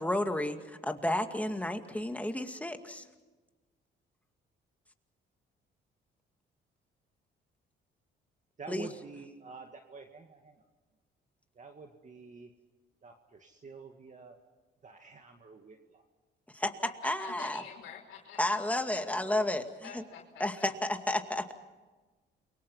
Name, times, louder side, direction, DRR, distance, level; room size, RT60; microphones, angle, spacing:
voice 1, 0.0-3.0 8.7-8.9 16.6-16.7 17.0-17.6 18.4-20.0 20.4-21.5, left 1 dB, 5° left, 5 dB, 2.2 m, -32 dB
voice 2, 8.6-10.7 11.6-12.5 13.0-14.4 14.8-16.0, right 4 dB, 40° right, 4 dB, 2.1 m, -48 dB
voice 3, 17.0-19.0 19.8-20.7, left 7 dB, 85° left, -5 dB, 3.7 m, -48 dB
29.5 x 23.5 x 5.7 m, 1.3 s
cardioid pair, 90°, 20 cm